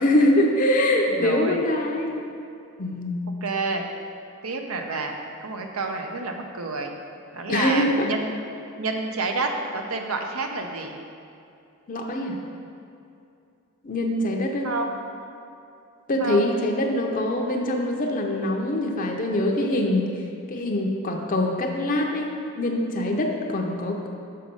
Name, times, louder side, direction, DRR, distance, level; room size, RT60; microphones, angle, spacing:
voice 1, 0.0-2.3 2.8-3.2 7.5-8.1 11.9-12.4 13.8-14.7 16.1-20.1 20.5-22.3 22.6-24.1, left 1 dB, 40° left, 1 dB, 0.6 m, -23 dB
voice 2, 1.2-1.6 3.4-3.8 4.4-5.1 5.4-6.9 7.3-8.4 8.8-11.0 14.6-15.0 16.2-16.5, right 3 dB, 85° right, 4 dB, 0.7 m, -29 dB
6.6 x 5.1 x 5.3 m, 2.6 s
head